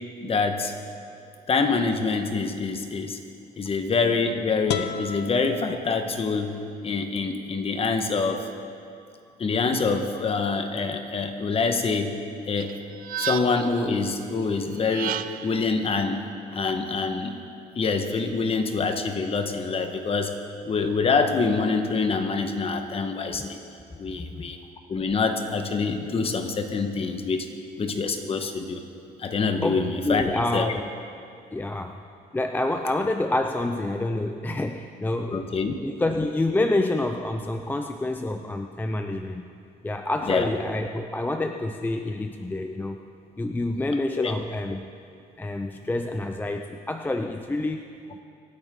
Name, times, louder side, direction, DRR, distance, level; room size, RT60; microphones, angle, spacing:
voice 1, 0.2-0.7 1.5-3.2 3.6-6.6 6.8-8.5 9.4-12.2 12.5-12.8 13.2-16.2 16.5-17.4 17.7-20.4 20.6-23.6 24.0-24.6 24.9-27.5 27.8-28.8 29.2-30.8 35.3-35.7 40.2-40.5 44.2-44.3, left 4 dB, 35° left, 6 dB, 1.3 m, -26 dB
sound 1, 4.7-6.6, left 9 dB, 70° left, 0.7 m, -33 dB
sound 2, 12.6-13.8 14.7-15.6, right 11 dB, 60° right, 0.5 m, -32 dB
voice 2, 29.6-30.9 31.5-32.0 32.3-35.4 35.8-39.5 39.8-43.0 43.4-44.9 45.4-47.9, left 2 dB, 10° left, 6 dB, 0.5 m, -27 dB
25.5 x 9.0 x 3.8 m, 2.4 s
cardioid pair, 110°, 17 cm